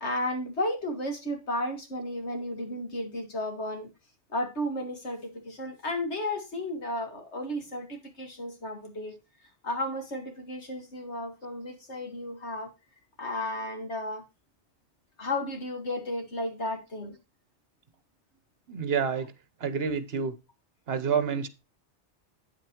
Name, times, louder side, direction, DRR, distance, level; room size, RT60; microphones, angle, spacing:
voice 1, 0.0-3.9 4.3-9.1 9.6-12.7 13.2-14.2 15.2-17.2, left 1 dB, 75° left, 2.5 m, -33 dB
voice 2, 18.7-19.3 19.6-20.3 20.9-21.5, right 6 dB, 60° right, 1.3 m, -28 dB
9.0 x 8.4 x 3.0 m
omnidirectional pair, 1.2 m